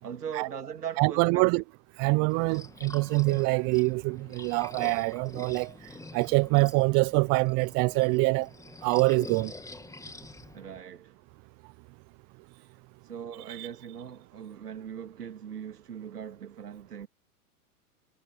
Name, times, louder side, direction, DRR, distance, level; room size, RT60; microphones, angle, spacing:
voice 1, 0.0-1.4 10.5-11.2 13.1-17.1, right 8 dB, 80° right, 2.8 m, -40 dB
voice 2, 1.0-1.6 2.0-5.7 6.1-8.5 8.8-9.5 13.5-13.7, right 28 dB, 35° right, 0.9 m, -25 dB
sound 1, 2.3-10.8, left 3 dB, 5° left, 3.0 m, -46 dB
hypercardioid pair, 100°, 46 cm